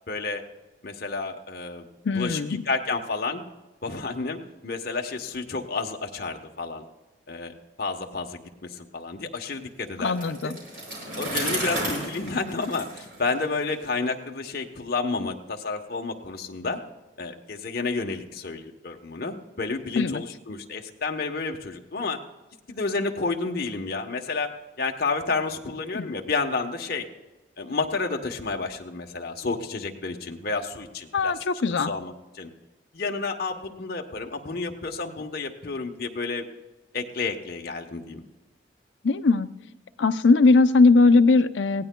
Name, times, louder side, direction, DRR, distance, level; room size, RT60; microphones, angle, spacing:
voice 1, 0.1-0.4 0.8-1.9 2.1-3.4 3.8-6.8 7.3-10.5 11.2-16.8 17.2-22.2 22.7-27.1 27.6-31.3 31.6-32.5 32.9-36.5 36.9-38.2, left 3 dB, 55° left, 2 dB, 1.0 m, -30 dB
voice 2, 2.0-2.6 10.0-10.6 20.0-20.2 25.9-26.1 31.1-31.9 39.0-39.5 40.0-41.9, left 3 dB, 70° left, 10 dB, 0.5 m, -20 dB
Bicycle, 10.0-13.9, right 1 dB, 60° right, 5.6 m, -33 dB
19.0 x 16.0 x 2.2 m, 1.1 s
head